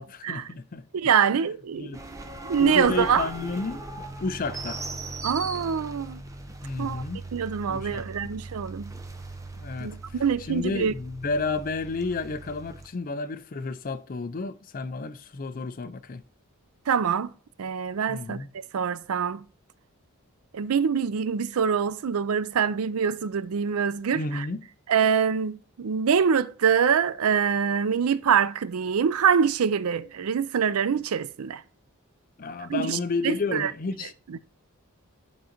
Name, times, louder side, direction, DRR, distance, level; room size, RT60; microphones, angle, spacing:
voice 1, 0.0-1.2 1.7-2.0 2.6-3.8 4.2-4.8 6.6-7.2 7.6-8.3 9.6-9.9 10.4-16.2 18.1-18.5 24.1-24.6 32.4-34.1, left 3 dB, 40° left, 0.5 m, -31 dB
voice 2, 0.9-1.9 2.4-3.3 5.2-6.2 6.8-7.0 7.3-8.9 9.8-10.9 16.9-17.3 17.6-18.4 18.7-19.4 20.5-24.5 24.9-31.6 32.7-33.0 33.2-33.7 34.3-34.4, right 7 dB, 85° right, 0.4 m, -24 dB
sound 1, 1.9-12.9, right 2 dB, 15° right, 0.7 m, -39 dB
9.4 x 3.8 x 4.4 m
head